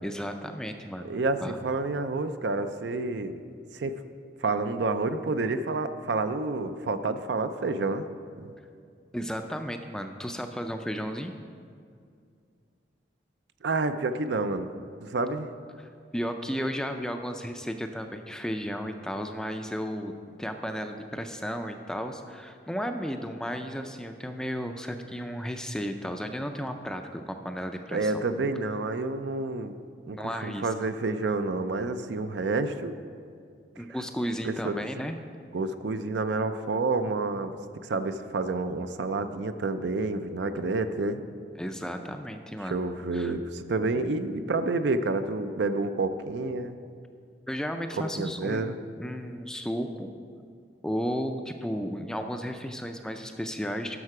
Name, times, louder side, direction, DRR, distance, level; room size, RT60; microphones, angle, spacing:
voice 1, 0.0-1.1 1.4-1.6 9.1-11.3 15.8-20.1 20.4-28.2 30.1-30.7 33.8-35.2 41.6-42.8 43.1-43.3 47.5-50.1 50.8-54.0, equal, 5° left, 6 dB, 0.4 m, -34 dB
voice 2, 1.0-3.4 3.7-3.9 4.4-8.0 8.4-8.5 13.6-14.7 15.0-15.5 27.9-29.7 30.1-32.9 34.4-35.1 35.5-41.2 42.7-46.7 48.1-48.8, right 3 dB, 70° right, 10 dB, 0.5 m, -29 dB
11.0 x 6.6 x 4.8 m, 2.3 s
head